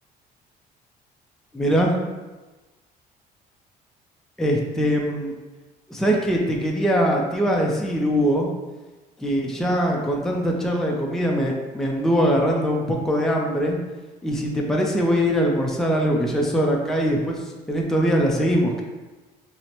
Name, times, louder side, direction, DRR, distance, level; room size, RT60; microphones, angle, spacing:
voice 1, 1.5-1.9 4.4-5.3 5.9-8.5 9.2-13.8 14.2-18.8, equal, 5° left, -1 dB, 0.5 m, -22 dB
5.5 x 2.1 x 2.9 m, 1.2 s
cardioid pair, 110°, 17 cm